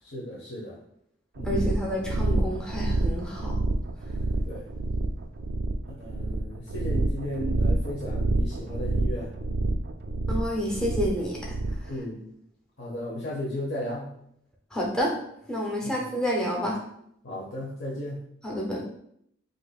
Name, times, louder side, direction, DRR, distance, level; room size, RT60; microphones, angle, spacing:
voice 1, 0.0-0.8 1.4-1.8 4.4-4.7 5.9-9.3 11.9-12.2 12.8-14.1 15.8-16.0 17.2-18.2, left 1 dB, 65° left, -6 dB, 0.8 m, -35 dB
voice 2, 1.4-3.5 10.3-11.9 14.7-15.2 15.5-16.8 18.4-18.8, equal, 5° left, -3 dB, 0.5 m, -29 dB
sound 1, 1.4-11.9, right 2 dB, 55° right, 0.3 m, -28 dB
5.0 x 2.6 x 2.3 m, 0.73 s
head